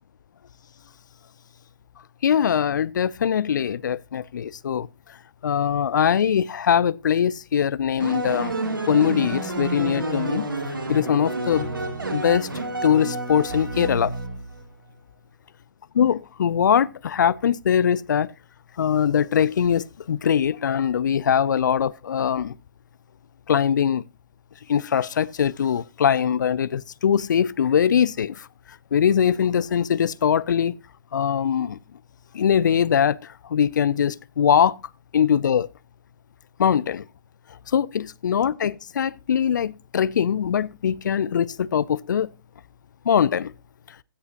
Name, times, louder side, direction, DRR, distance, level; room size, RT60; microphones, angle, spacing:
voice 1, 2.2-4.9 5.4-8.6 8.9-10.5 10.9-11.7 12.1-12.5 12.8-14.1 15.9-18.3 18.8-22.5 23.5-24.0 24.7-28.5 28.9-30.7 31.1-31.8 32.3-33.2 33.5-34.8 35.1-35.7 36.6-37.0 37.7-42.3 43.1-43.5, left 8 dB, 60° left, 0.6 m, -22 dB
sound 1, 8.0-14.6, right 2 dB, 80° right, 2.9 m, -29 dB
15.5 x 7.9 x 2.9 m
figure-of-eight pair, 130°, 11 cm